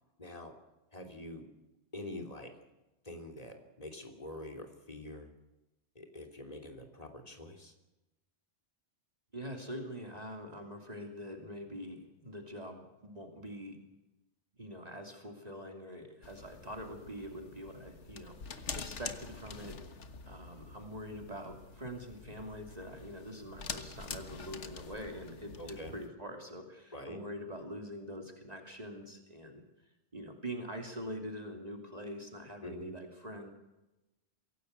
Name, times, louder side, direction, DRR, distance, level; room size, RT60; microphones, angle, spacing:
voice 1, 0.2-0.6 0.9-1.5 1.9-2.6 3.0-5.3 5.9-7.7 25.6-26.0 26.9-27.2 32.6-32.9, left 1 dB, 35° left, 4 dB, 3.3 m, -45 dB
voice 2, 9.3-13.8 14.6-19.8 20.3-29.6 30.1-33.5, equal, 35° right, 3 dB, 3.0 m, -44 dB
sound 1, 16.2-26.1, left 4 dB, 85° left, 1.8 m, -46 dB
24.0 x 16.5 x 8.2 m, 1.0 s
omnidirectional pair, 1.2 m